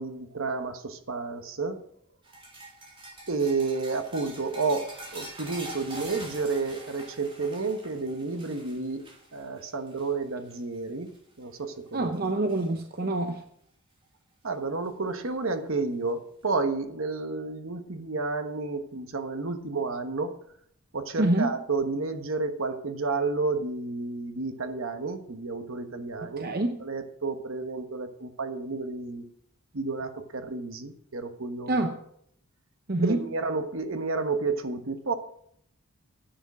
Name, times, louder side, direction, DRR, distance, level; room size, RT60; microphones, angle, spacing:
voice 1, 0.0-1.8 3.3-9.0 9.3-11.1 11.4-12.1 14.4-20.3 20.9-26.5 26.8-29.2 29.7-31.8 33.1-35.1, right 3 dB, 65° right, 8 dB, 1.2 m, -31 dB
sound 1, 2.2-10.8 11.1-11.4 11.9-12.7 14.0-14.1 15.4-15.5, right 2 dB, 25° right, 3.5 m, -44 dB
voice 2, 11.9-13.4 21.2-21.5 26.2-26.8 31.7-32.0 32.9-33.2, right 2 dB, 45° right, 5 dB, 0.8 m, -26 dB
10.0 x 8.0 x 6.1 m, 0.68 s
head